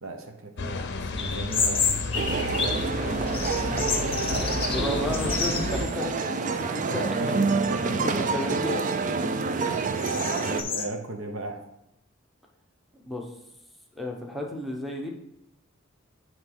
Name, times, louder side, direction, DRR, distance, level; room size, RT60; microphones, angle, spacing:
voice 1, 0.0-4.9 6.9-8.1 9.1-9.2 10.1-11.6, right 2 dB, 70° right, 4 dB, 0.9 m, -38 dB
sound 1, 0.6-5.9, left 3 dB, 55° left, 0.6 m, -32 dB
sound 2, 1.2-2.9 3.3-6.0 6.3-6.4 7.2-7.6 8.0-10.8, left 5 dB, 30° left, 0.8 m, -30 dB
sound 3, 2.1-10.6, right 4 dB, 40° right, 0.4 m, -28 dB
voice 2, 4.7-7.7 8.0-9.2 9.7-10.0 13.0-13.3 13.9-15.1, left 1 dB, ahead, 1 dB, 0.8 m, -33 dB
7.8 x 3.1 x 5.5 m, 0.82 s
head